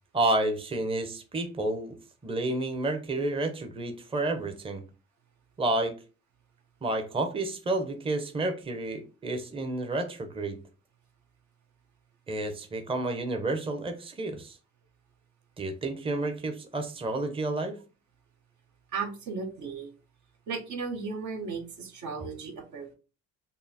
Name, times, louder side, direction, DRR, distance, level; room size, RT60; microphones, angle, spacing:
voice 1, 0.1-1.9 2.2-4.8 5.6-5.9 6.8-10.6 12.3-14.6 15.6-17.8, right 2 dB, 20° right, 6 dB, 0.6 m, -30 dB
voice 2, 18.9-19.9 20.5-22.9, right 5 dB, 70° right, 3 dB, 1.0 m, -35 dB
5.3 x 2.0 x 2.7 m, 0.34 s
cardioid pair, 90°, 30 cm